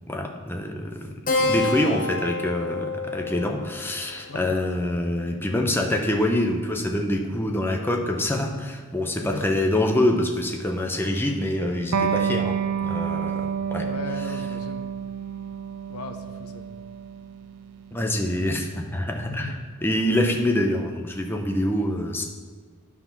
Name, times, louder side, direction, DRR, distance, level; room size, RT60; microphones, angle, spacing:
voice 1, 0.1-1.1 1.4-13.9 14.3-14.4 17.9-19.6 19.8-22.2, left 1 dB, 10° left, 3 dB, 0.7 m, -25 dB
Keyboard (musical), 1.3-6.2, left 3 dB, 40° left, 1.1 m, -30 dB
Electric guitar, 11.9-19.1, right 7 dB, 85° right, 0.6 m, -29 dB
voice 2, 13.8-14.8 15.9-16.7 19.2-19.6, left 3 dB, 80° left, 7 dB, 0.8 m, -37 dB
9.5 x 6.0 x 5.8 m, 1.5 s
head